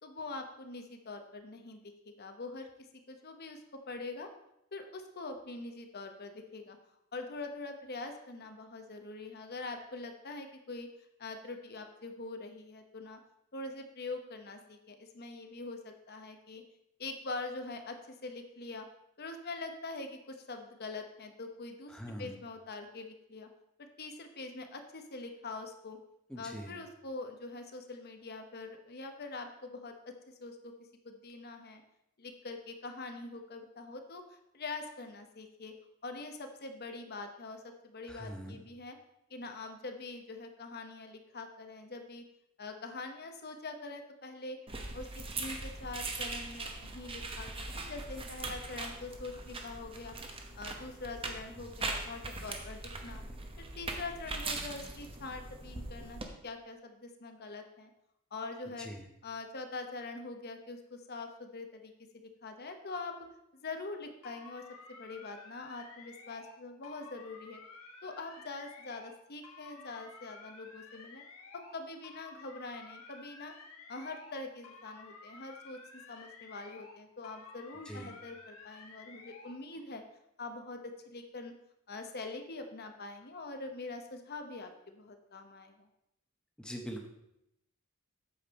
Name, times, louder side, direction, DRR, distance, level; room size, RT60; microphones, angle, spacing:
voice 1, 0.0-1.8 2.2-2.7 3.1-4.3 4.7-6.8 7.1-10.9 11.2-13.2 13.5-16.6 17.0-18.9 19.2-23.5 23.8-26.0 26.4-30.7 31.0-31.8 32.2-35.7 36.0-39.0 39.3-42.2 42.6-44.6 44.9-50.1 50.6-53.2 53.6-57.9 58.3-58.9 59.2-63.1 63.6-67.6 68.0-71.2 71.5-73.5 73.9-80.0 80.4-81.5 81.9-85.9, left 3 dB, 45° left, 5 dB, 1.0 m, -44 dB
voice 2, 21.9-22.3 26.3-26.8 38.1-38.6 58.8-59.0 77.8-78.1 86.6-87.1, equal, 5° left, 2 dB, 1.0 m, -43 dB
sound 1, 44.7-56.2, right 3 dB, 25° right, 0.9 m, -41 dB
sound 2, 64.2-66.6 66.8-69.2 69.4-71.8 72.0-74.4 74.6-77.0 77.2-79.6, left 4 dB, 70° left, 1.8 m, -53 dB
8.6 x 7.4 x 4.2 m, 0.81 s
head